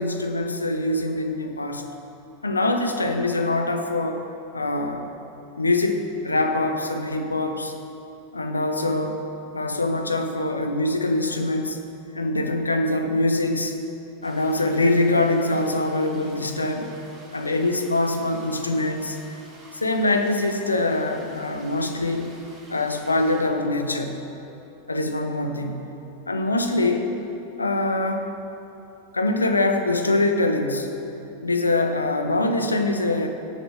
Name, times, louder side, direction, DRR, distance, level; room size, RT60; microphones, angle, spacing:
voice 1, 0.0-1.9 2.4-4.2 4.5-5.1 5.6-7.7 8.3-9.2 9.5-11.8 12.1-13.7 14.2-16.9 17.3-19.2 19.7-22.3 22.7-24.2 24.9-25.9 26.3-27.1 27.6-28.3 29.1-30.9 31.4-33.3, left 2 dB, 80° left, 5 dB, 0.9 m, -23 dB
sound 1, 14.2-23.5, right 1 dB, 35° right, 3.2 m, -49 dB
17.5 x 7.0 x 5.1 m, 2.9 s
figure-of-eight pair, 90°, 0 cm